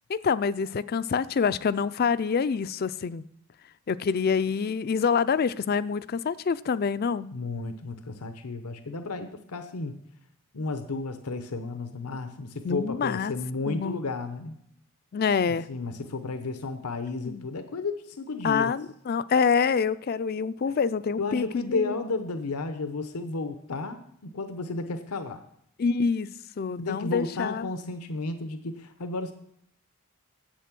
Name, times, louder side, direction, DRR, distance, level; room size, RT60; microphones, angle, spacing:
voice 1, 0.1-3.2 3.9-7.4 12.6-13.3 13.7-14.0 15.1-15.7 17.2-17.4 18.4-21.9 25.8-27.7, left 6 dB, 45° left, 0.4 m, -26 dB
voice 2, 7.3-10.0 10.5-14.5 15.5-18.7 21.2-25.4 26.8-29.3, left 3 dB, 90° left, 0.9 m, -33 dB
10.5 x 8.2 x 6.0 m
head